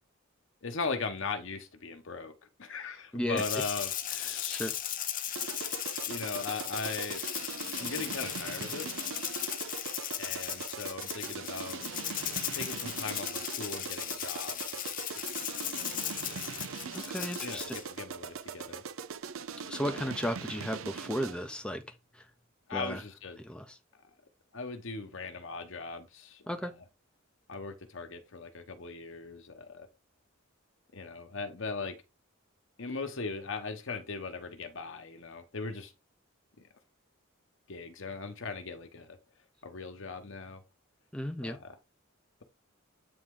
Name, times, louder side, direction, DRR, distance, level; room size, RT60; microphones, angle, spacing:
voice 1, 0.6-2.3 2.6-4.8 6.0-7.2 7.8-8.9 10.2-11.8 12.5-14.6 15.6-15.9 17.4-18.8 19.8-20.1 22.7-23.4 24.5-26.7 27.5-29.9 30.9-32.0 32.8-35.9 36.6-36.7 37.7-39.2 39.6-40.6 41.4-41.8, left 4 dB, 65° left, 1.1 m, -39 dB
Rattle (instrument), 3.4-17.9, left 10 dB, 40° left, 0.8 m, -37 dB
sound 1, 5.4-21.5, right 6 dB, 70° right, 0.5 m, -41 dB
voice 2, 16.9-17.8 19.7-22.3 22.7-23.0 23.4-23.8 26.5-26.7 41.1-41.6, equal, 5° left, 0.6 m, -35 dB
8.6 x 3.6 x 3.7 m
head